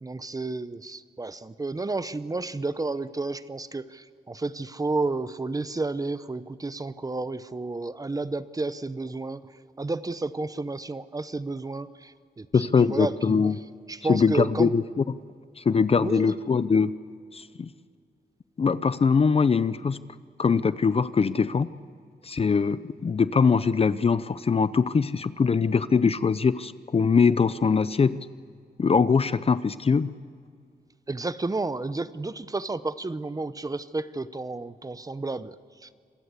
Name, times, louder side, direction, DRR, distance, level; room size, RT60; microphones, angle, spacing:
voice 1, 0.0-9.4 9.8-13.4 13.9-14.7 16.0-16.4 31.1-35.9, right 3 dB, 20° right, 14 dB, 0.7 m, -31 dB
voice 2, 12.5-13.6 14.1-15.1 15.6-16.9 17.3-17.7 18.6-20.0 20.4-21.7 22.2-28.2 28.8-30.1, left 5 dB, 35° left, 15 dB, 0.6 m, -22 dB
27.0 x 23.5 x 8.2 m, 2.2 s
wide cardioid pair, 125°, 17 cm